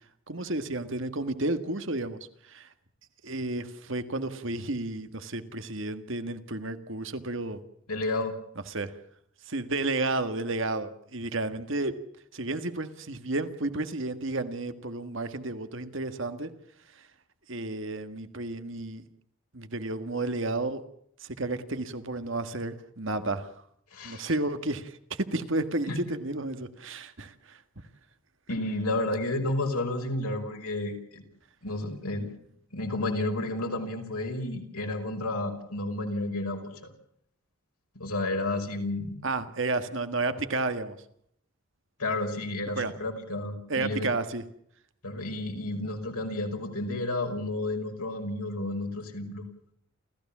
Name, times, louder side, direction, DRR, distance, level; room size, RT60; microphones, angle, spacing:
voice 1, 0.3-2.7 3.2-7.6 8.7-8.9 9.4-11.9 12.3-16.5 16.9-17.0 17.5-19.1 19.5-20.8 21.2-23.5 24.0-27.6 39.2-41.0 42.7-42.9 43.7-44.4, right 2 dB, 55° right, 9 dB, 1.7 m, -32 dB
voice 2, 7.9-8.3 23.9-24.2 25.9-26.0 28.5-31.2 31.6-32.3 32.7-36.9 38.0-39.2 42.0-44.1 45.0-49.4, left 2 dB, 90° left, 3 dB, 5.5 m, -31 dB
29.0 x 15.0 x 7.4 m, 0.71 s
head